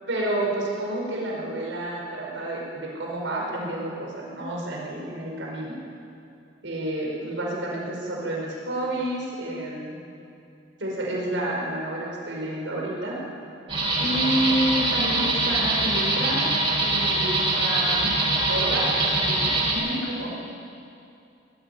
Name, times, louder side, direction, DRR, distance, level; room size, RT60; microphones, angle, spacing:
voice 1, 0.1-5.8 6.6-10.0 10.8-13.2 14.0-16.4 16.8-18.2 18.5-20.3, right 1 dB, 85° right, -2 dB, 5.3 m, -29 dB
sound 1, 13.7-19.7, right 2 dB, 30° right, 5.5 m, -23 dB
20.0 x 15.0 x 10.0 m, 2.6 s
head